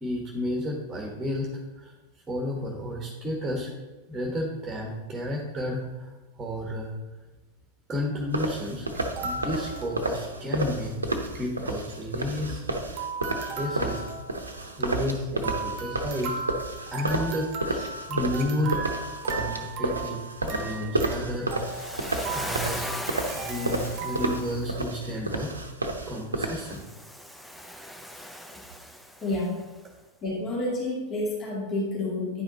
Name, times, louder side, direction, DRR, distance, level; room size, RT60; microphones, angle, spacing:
voice 1, 0.0-1.9 2.3-3.7 4.1-6.1 6.4-6.9 7.9-8.9 9.2-10.9 11.4-13.1 13.6-14.1 14.8-16.4 16.9-18.9 19.2-20.2 20.4-22.0 22.3-25.6 26.1-26.8, left 1 dB, 15° right, 1 dB, 1.4 m, -32 dB
sound 1, 8.3-26.8, right 2 dB, 80° right, 0.8 m, -31 dB
sound 2, 8.9-10.6 10.9-11.0 11.2-11.4 11.9-12.7 13.0-24.4, right 4 dB, 40° right, 1.1 m, -37 dB
Waves surf, 21.5-24.7 26.5-29.6, equal, ahead, 0.6 m, -39 dB
voice 2, 29.2-29.6 30.2-32.4, left 2 dB, 30° left, -4 dB, 2.2 m, -29 dB
10.0 x 5.0 x 3.9 m, 1.2 s
figure-of-eight pair, 90°, 0 cm